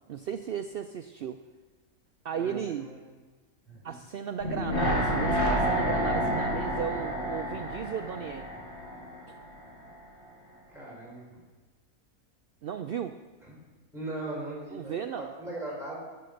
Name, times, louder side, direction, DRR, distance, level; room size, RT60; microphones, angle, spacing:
voice 1, 0.1-1.4 2.2-2.9 3.8-8.5 12.6-13.2 14.7-15.3, right 8 dB, 90° right, 8 dB, 0.5 m, -35 dB
voice 2, 2.3-3.0 3.7-4.0 10.7-11.4 13.5-13.6 13.9-16.0, right 2 dB, ahead, -3 dB, 4.6 m, -39 dB
sound 1, 4.4-9.5 9.8-9.9, equal, 45° left, 2.1 m, -29 dB
14.5 x 6.7 x 6.4 m, 1.3 s
omnidirectional pair, 1.5 m